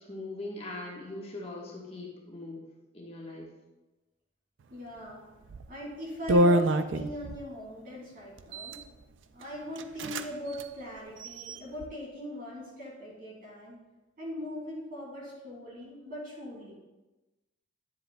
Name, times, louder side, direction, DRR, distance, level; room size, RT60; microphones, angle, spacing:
voice 1, 0.0-2.6 2.9-3.5, left 2 dB, 30° left, -3 dB, 1.3 m, -41 dB
voice 2, 4.7-5.2 5.7-8.8 9.3-13.8 14.2-16.8, left 1 dB, 50° right, -4 dB, 2.7 m, -40 dB
sound 1, 5.5-5.7 6.3-7.4 8.4-8.8 9.4-9.5 9.8-10.3 10.5-10.7 11.2-11.9, right 1 dB, 80° right, 0.4 m, -26 dB
10.0 x 7.6 x 2.3 m, 1.1 s
head